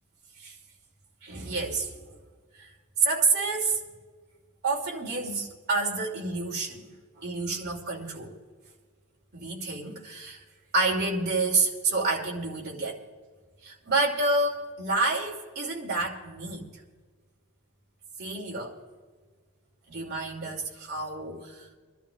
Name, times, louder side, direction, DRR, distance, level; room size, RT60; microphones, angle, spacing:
voice 1, 1.2-2.1 2.6-2.7 3.0-3.8 4.6-6.8 7.2-8.4 9.3-10.4 10.7-13.0 13.6-16.8 18.2-18.8 19.9-21.6, right 3 dB, 50° right, -1 dB, 2.7 m, -29 dB
26.5 x 12.0 x 2.4 m, 1.5 s
head